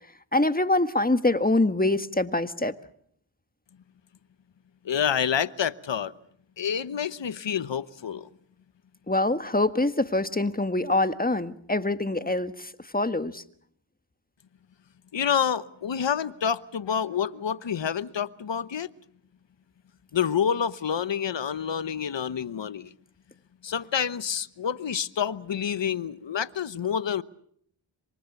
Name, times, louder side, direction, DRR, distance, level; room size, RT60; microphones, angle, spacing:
voice 1, 0.3-2.8 9.1-13.4, left 2 dB, 20° left, 1.6 m, -25 dB
voice 2, 4.8-6.1 6.6-8.3 15.1-18.9 20.1-22.9 23.6-27.2, left 8 dB, 60° left, 1.1 m, -28 dB
27.0 x 24.0 x 7.1 m
cardioid pair, 40°, 49 cm